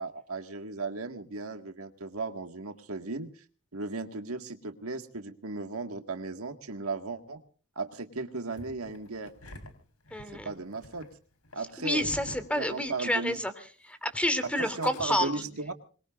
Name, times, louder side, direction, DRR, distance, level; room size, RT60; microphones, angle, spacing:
voice 1, 0.0-3.4 3.7-7.4 7.8-9.3 10.4-11.1 11.5-12.1 12.6-13.4 14.6-15.7, right 3 dB, 75° right, 7 dB, 1.9 m, -36 dB
Engine starting, 8.5-13.4 13.7-13.8 14.6-15.0, left 1 dB, 90° left, 4.0 m, -47 dB
voice 2, 10.1-10.5 11.8-13.5 13.8-15.3, left 1 dB, 5° left, 9 dB, 2.9 m, -29 dB
26.0 x 21.5 x 2.5 m, 0.41 s
head